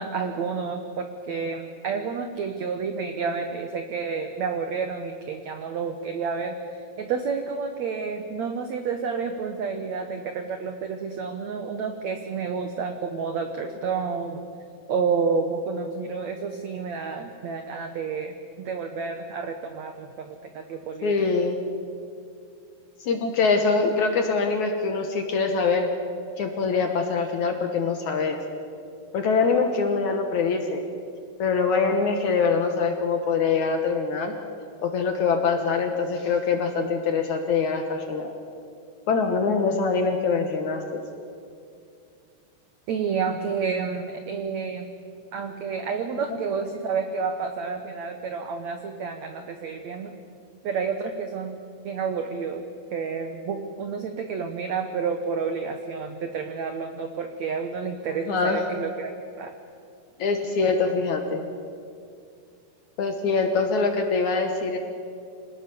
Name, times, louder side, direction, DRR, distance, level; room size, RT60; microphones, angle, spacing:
voice 1, 0.0-6.6 7.0-14.4 14.9-21.1 42.9-44.9 45.3-50.1 50.6-52.6 52.9-59.5, right 5 dB, 90° right, 6 dB, 1.5 m, -30 dB
voice 2, 21.0-21.6 23.0-25.9 26.4-28.4 29.1-30.8 31.4-34.3 34.8-38.3 39.1-41.0 58.3-58.6 60.2-61.4 63.0-64.8, left 4 dB, 60° left, 5 dB, 2.1 m, -24 dB
26.0 x 19.0 x 7.0 m, 2.4 s
omnidirectional pair, 4.9 m